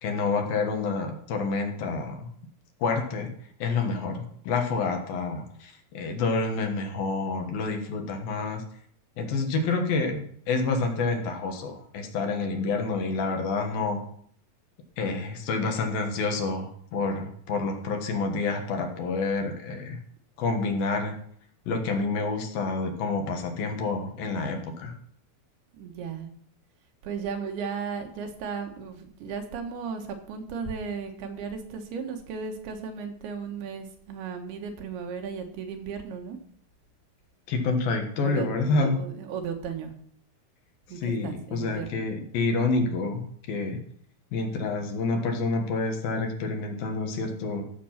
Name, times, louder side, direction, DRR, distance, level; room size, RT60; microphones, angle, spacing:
voice 1, 0.0-2.3 2.8-3.3 3.6-8.6 9.2-14.0 15.0-20.0 20.4-21.1 21.7-24.9 37.5-39.0 41.0-43.2 43.5-43.8 44.3-47.6, left 3 dB, 70° left, 4 dB, 3.1 m, -28 dB
voice 2, 25.7-26.3 27.0-36.4 38.2-39.9 40.9-42.0, right 6 dB, 75° right, 4 dB, 3.3 m, -35 dB
14.5 x 6.9 x 5.8 m, 0.63 s
omnidirectional pair, 4.6 m